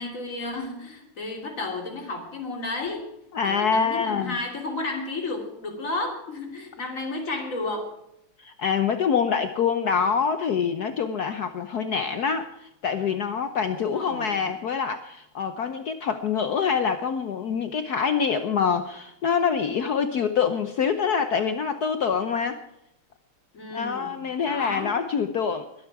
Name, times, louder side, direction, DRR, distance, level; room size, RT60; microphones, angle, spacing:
voice 1, 0.0-3.1 3.4-8.0 13.6-14.5 23.5-24.2 24.5-24.9, left 2 dB, 40° left, 2 dB, 3.3 m, -32 dB
voice 2, 3.3-4.3 8.4-22.6 23.7-25.7, left 6 dB, 60° left, 9 dB, 1.1 m, -25 dB
22.0 x 11.0 x 4.7 m, 0.81 s
omnidirectional pair, 2.3 m